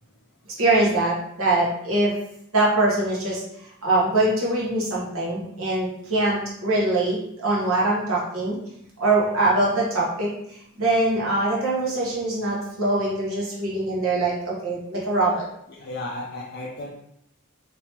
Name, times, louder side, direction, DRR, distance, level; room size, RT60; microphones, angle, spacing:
voice 1, 0.6-2.1 2.5-3.4 3.8-8.6 9.0-15.4, right 2 dB, 70° right, -5 dB, 1.2 m, -23 dB
voice 2, 15.7-16.9, left 2 dB, 50° left, -2 dB, 0.4 m, -35 dB
3.4 x 2.9 x 2.8 m, 0.75 s
head